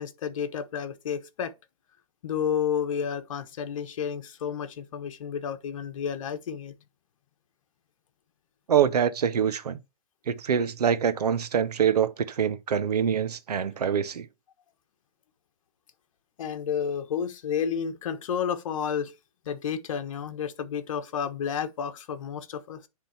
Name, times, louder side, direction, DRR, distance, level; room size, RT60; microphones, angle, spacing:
voice 1, 0.0-1.5 2.2-6.7 16.4-19.1 19.4-22.9, left 7 dB, 55° left, 1.3 m, -31 dB
voice 2, 8.7-9.8 10.3-14.3, right 8 dB, 85° right, 0.9 m, -25 dB
10.0 x 3.8 x 4.3 m
hypercardioid pair, 160°, 20 cm